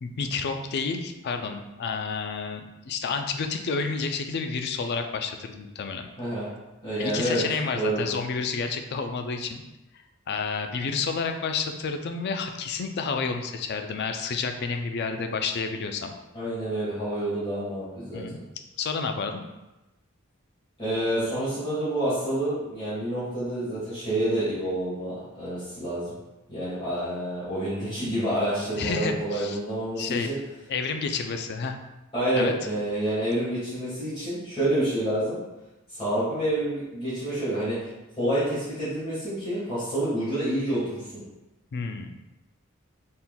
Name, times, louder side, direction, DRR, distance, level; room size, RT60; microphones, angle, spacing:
voice 1, 0.0-6.1 7.0-9.6 10.3-16.1 18.1-18.4 18.8-19.4 28.8-29.6 30.0-30.3 30.7-31.8 32.3-32.5 41.7-42.1, left 5 dB, 55° left, 6 dB, 0.4 m, -30 dB
voice 2, 6.2-6.5 6.8-7.4 7.7-8.1 16.3-18.4 20.8-26.2 26.5-30.3 32.1-35.4 35.9-37.9 38.2-41.2, right 1 dB, 25° left, -11 dB, 1.4 m, -28 dB
4.2 x 3.6 x 2.3 m, 1.0 s
head